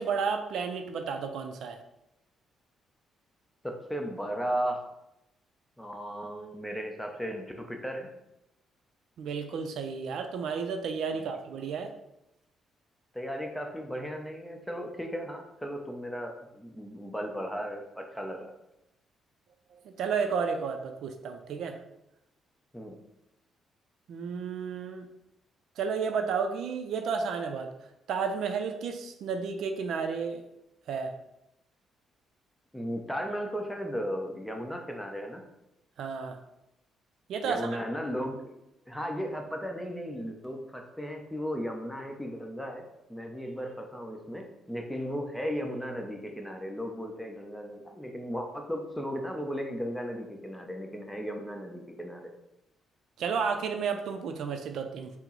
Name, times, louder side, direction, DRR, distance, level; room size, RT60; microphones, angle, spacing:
voice 1, 0.0-1.8 9.2-11.9 19.7-21.8 24.1-25.1 25.8-27.7 28.1-30.4 30.9-31.1 36.0-36.4 37.3-37.7 53.2-55.1, right 5 dB, 75° right, 6 dB, 0.4 m, -32 dB
voice 2, 3.6-4.8 5.8-8.1 11.1-11.3 13.1-18.5 22.7-23.0 32.7-35.5 37.4-38.6 38.9-42.8 43.1-52.2, equal, 5° left, 2 dB, 0.6 m, -35 dB
4.4 x 2.0 x 3.8 m, 0.87 s
cardioid pair, 90°, 0 cm